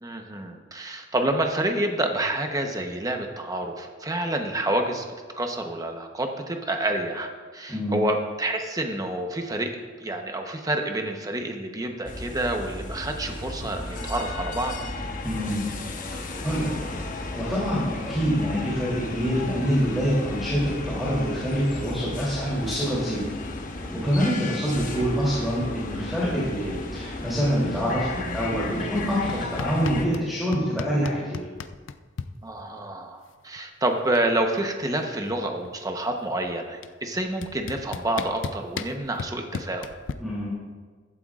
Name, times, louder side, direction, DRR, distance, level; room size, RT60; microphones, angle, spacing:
voice 1, 0.0-5.0 5.4-14.7 24.4-24.6 24.9-25.0 32.4-39.9, right 1 dB, 20° right, 3 dB, 1.0 m, -28 dB
sound 1, 12.1-30.1, left 2 dB, 45° left, 1.1 m, -34 dB
voice 2, 15.2-15.7 16.2-16.7 17.1-23.2 23.9-31.4 40.2-40.5, equal, ahead, -9 dB, 3.0 m, -26 dB
sound 2, 29.3-30.3 30.5-32.3 33.6-33.7 33.9-34.3 34.6-36.0 36.8-36.9 37.4-40.1, left 5 dB, 85° left, 0.5 m, -35 dB
15.5 x 12.0 x 2.5 m, 1.4 s
head